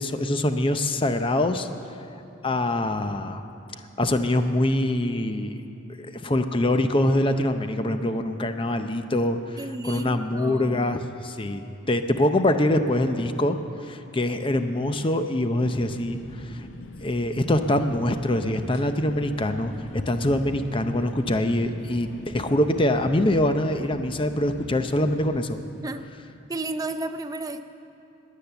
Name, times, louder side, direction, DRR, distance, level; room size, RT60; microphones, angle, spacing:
voice 1, 0.0-1.7 2.4-3.4 4.0-5.6 6.0-13.6 13.8-16.7 17.0-25.6, left 1 dB, 25° left, 8 dB, 0.6 m, -24 dB
voice 2, 9.6-10.9 25.8-26.0 26.5-27.6, right 2 dB, 20° right, 7 dB, 0.5 m, -32 dB
sound 1, 15.6-25.4, left 2 dB, 75° left, 0.7 m, -43 dB
20.5 x 8.4 x 7.0 m, 2.7 s
head